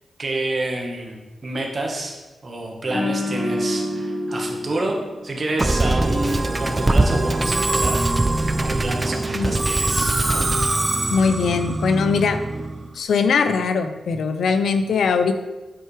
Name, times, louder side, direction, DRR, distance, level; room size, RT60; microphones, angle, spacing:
voice 1, 0.2-5.0 5.2-10.1, right 2 dB, 50° right, 1 dB, 1.3 m, -29 dB
sound 1, 2.9-6.1 6.4-6.7, left 1 dB, 25° left, 1.5 m, -28 dB
Musical instrument, 5.6-12.9, right 2 dB, 30° right, 0.4 m, -22 dB
voice 2, 11.1-12.4 13.0-15.3, left 5 dB, 85° left, 9 dB, 0.4 m, -20 dB
7.7 x 4.5 x 3.3 m, 1.2 s
cardioid pair, 65°, 0 cm